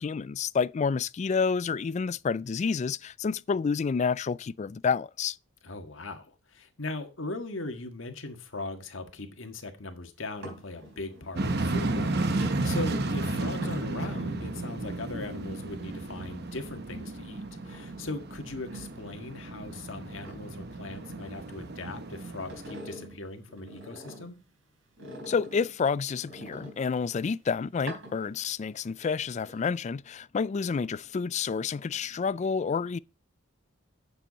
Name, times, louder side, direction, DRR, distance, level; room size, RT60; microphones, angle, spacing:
voice 1, 0.0-5.4 25.3-33.0, left 5 dB, 35° left, 0.3 m, -29 dB
voice 2, 5.6-24.4, left 2 dB, 75° left, 1.7 m, -39 dB
sound 1, 10.2-16.6 17.0-19.9 20.2-22.0 22.3-24.4 25.0-27.2 27.7-28.7 29.0-29.7, right 1 dB, 85° right, 3.7 m, -47 dB
sound 2, 11.4-22.8, right 2 dB, 55° right, 0.9 m, -33 dB
9.1 x 6.9 x 4.0 m
head